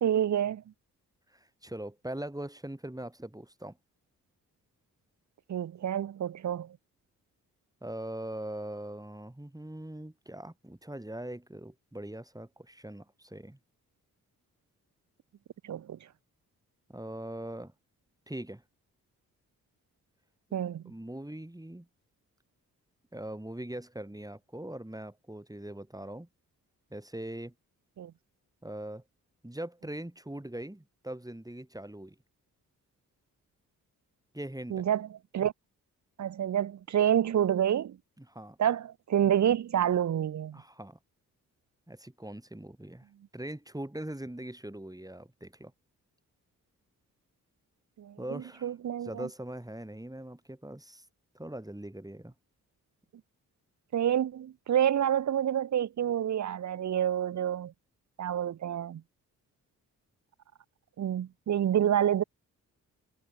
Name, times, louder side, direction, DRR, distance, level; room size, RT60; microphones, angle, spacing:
voice 1, 0.0-0.6 5.5-6.7 15.6-16.0 20.5-20.8 28.0-28.1 34.7-35.1 35.3-35.5 36.2-38.0 38.6-40.6 48.0-49.3 53.9-57.7 58.2-59.0 61.0-62.2, right 10 dB, 50° right, 0.8 m, -28 dB
voice 2, 1.3-3.8 7.8-13.6 16.9-17.7 18.3-18.6 20.8-21.9 23.1-26.3 26.9-27.5 28.6-29.0 29.4-32.2 34.3-34.9 38.2-38.6 40.5-41.0 41.9-43.1 43.3-45.7 48.2-48.7 49.0-51.0 51.3-52.3, right 1 dB, 10° right, 8.0 m, -41 dB
supercardioid pair, 45°, 37 cm